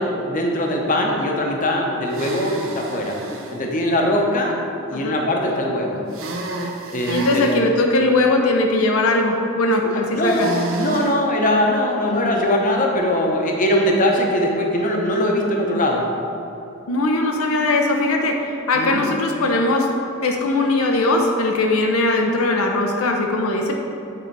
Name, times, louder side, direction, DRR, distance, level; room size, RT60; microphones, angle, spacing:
voice 1, 0.0-3.2 3.5-4.5 4.9-6.0 6.9-7.6 9.8-16.0 18.7-19.1, left 1 dB, 40° left, 0 dB, 0.8 m, -21 dB
sound 1, 2.1-3.6 6.1-7.6 10.2-11.2, right 2 dB, 65° right, 0.8 m, -30 dB
voice 2, 7.1-10.5 16.9-18.4 18.7-19.9 20.2-23.7, left 2 dB, 80° left, 2 dB, 0.7 m, -19 dB
8.8 x 3.9 x 4.6 m, 2.9 s
head